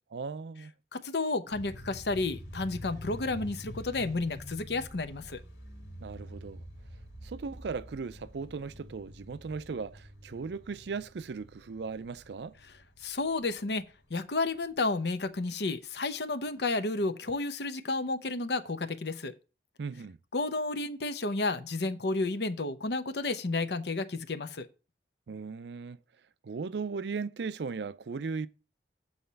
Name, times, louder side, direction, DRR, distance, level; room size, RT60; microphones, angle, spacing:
voice 1, 0.1-0.7 6.0-6.6 7.2-12.6 19.8-20.2 25.3-26.0 26.4-28.5, right 4 dB, 70° right, 0.4 m, -37 dB
voice 2, 0.9-5.4 13.0-19.3 20.3-24.7, left 3 dB, 70° left, 0.8 m, -31 dB
sound 1, 1.5-14.6, equal, 90° left, 2.5 m, -47 dB
8.0 x 4.2 x 6.7 m
head